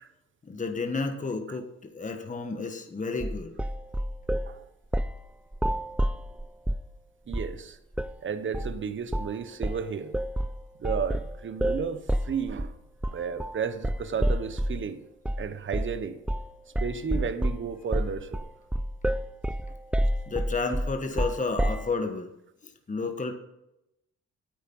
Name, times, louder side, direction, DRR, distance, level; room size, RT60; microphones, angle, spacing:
voice 1, 0.4-3.5 20.3-22.3 22.9-23.3, left 3 dB, 25° left, 1.5 m, -31 dB
sound 1, 3.2-4.5 4.9-5.2 5.5-6.9 7.3-7.6 7.9-8.2 8.5-8.8 9.1-9.4 9.6-14.9 15.3-15.5 15.7-16.0 16.3-16.5 16.8-21.9, equal, 5° right, 0.5 m, -29 dB
voice 2, 7.3-7.8 8.2-10.1 10.8-12.0 12.2-12.7 13.1-15.0 15.4-16.2 16.8-18.4, right 6 dB, 40° right, 1.1 m, -33 dB
9.6 x 8.9 x 5.4 m
cardioid pair, 90°, 30 cm